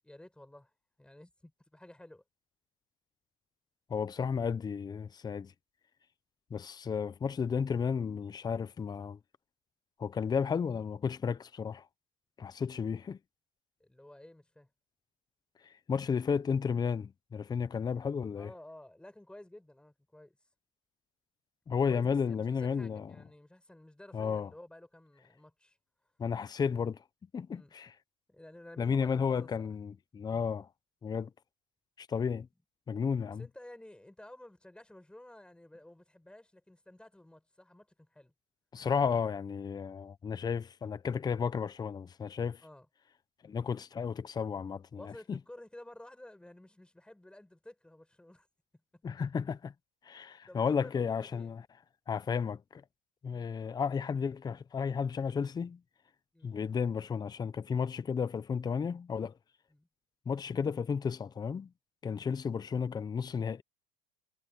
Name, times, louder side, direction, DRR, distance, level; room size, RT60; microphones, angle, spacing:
voice 1, 0.0-0.7 1.0-2.2 13.8-14.7 18.4-20.4 21.7-25.8 27.5-27.7 28.3-29.7 30.3-30.5 33.3-38.3 40.8-40.9 42.6-42.9 44.9-48.5 48.9-49.0 50.5-51.5 56.3-56.5 59.7-59.9 62.1-62.3, left 1 dB, 5° left, 5.5 m, -53 dB
voice 2, 3.9-5.5 6.5-9.2 10.0-11.9 12.4-13.2 15.6-18.5 21.7-23.1 24.1-24.5 26.2-27.0 27.3-27.9 28.8-30.7 31.0-31.3 32.0-32.5 32.9-33.5 38.7-42.6 43.4-45.4 49.0-49.7 50.0-51.6 52.1-52.8 53.2-55.8 56.4-59.3 60.3-61.7 62.0-63.6, left 6 dB, 25° left, 0.9 m, -33 dB
supercardioid pair, 100°, 18 cm